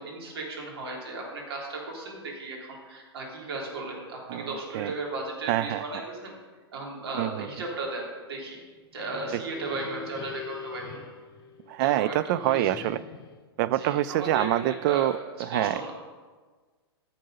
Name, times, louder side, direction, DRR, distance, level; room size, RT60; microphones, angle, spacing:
voice 1, 0.0-6.3 6.7-8.6 8.9-11.0 11.8-12.6 13.7-15.1 15.5-15.9, right 2 dB, 70° right, -1 dB, 3.0 m, -36 dB
voice 2, 4.3-4.9 5.5-5.8 7.1-7.5 11.7-13.0 13.6-15.8, right 14 dB, 45° right, 16 dB, 0.4 m, -26 dB
sound 1, 8.8-11.9 12.4-13.4, left 6 dB, 25° left, 2.5 m, -42 dB
11.0 x 6.8 x 5.3 m, 1.4 s
hypercardioid pair, 120°, 14 cm